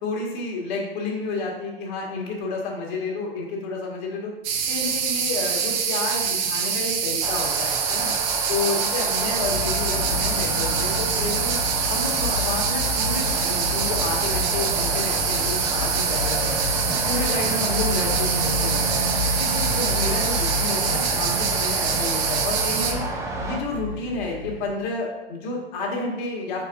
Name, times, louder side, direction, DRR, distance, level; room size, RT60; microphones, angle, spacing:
voice 1, 0.0-4.3 4.7-8.1 8.5-11.6 11.9-16.5 16.9-19.1 19.4-23.0 23.4-26.6, left 3 dB, 50° left, -1 dB, 1.6 m, -30 dB
sound 1, 4.4-22.9, right 7 dB, 35° right, 0.8 m, -25 dB
sound 2, 7.2-23.6, right 3 dB, 10° right, 0.5 m, -31 dB
sound 3, 9.4-24.7, left 4 dB, 75° left, 1.4 m, -31 dB
5.6 x 4.7 x 3.5 m, 1.1 s
figure-of-eight pair, 100°, 31 cm